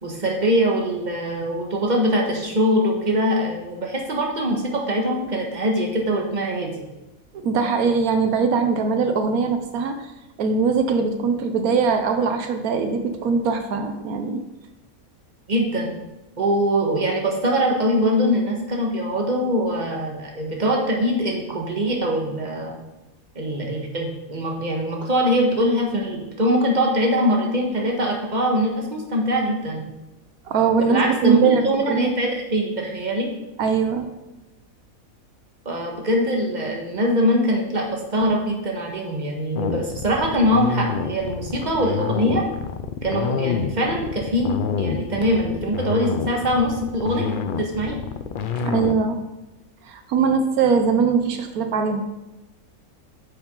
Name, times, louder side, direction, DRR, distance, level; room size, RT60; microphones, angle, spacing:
voice 1, 0.0-6.7 15.5-15.9 16.4-22.7 23.3-29.8 30.9-33.3 35.6-42.4 43.0-48.0, equal, 30° right, 0 dB, 1.6 m, -23 dB
voice 2, 7.4-10.0 10.4-14.4 30.5-32.1 33.6-34.1 48.6-49.2 49.9-52.0, right 5 dB, 85° right, 7 dB, 1.3 m, -21 dB
sound 1, 39.5-49.0, left 6 dB, 65° left, 0.5 m, -27 dB
9.7 x 7.2 x 3.8 m, 1.0 s
omnidirectional pair, 1.5 m